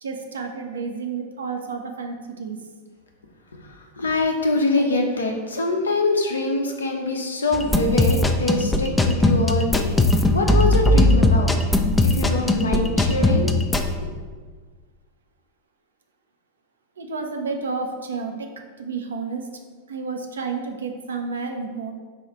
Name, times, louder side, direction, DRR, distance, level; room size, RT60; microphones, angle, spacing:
voice 1, 0.0-2.6 17.0-18.5 18.8-19.5 19.9-21.9, right 4 dB, 70° right, 4 dB, 0.5 m, -30 dB
voice 2, 4.0-11.6 12.0-13.5 14.0-14.1, left 2 dB, 75° left, 2 dB, 0.6 m, -24 dB
sound 1, 7.5-13.9, left 2 dB, 10° left, 0.3 m, -19 dB
4.2 x 2.3 x 4.5 m, 1.5 s
figure-of-eight pair, 90°, 0 cm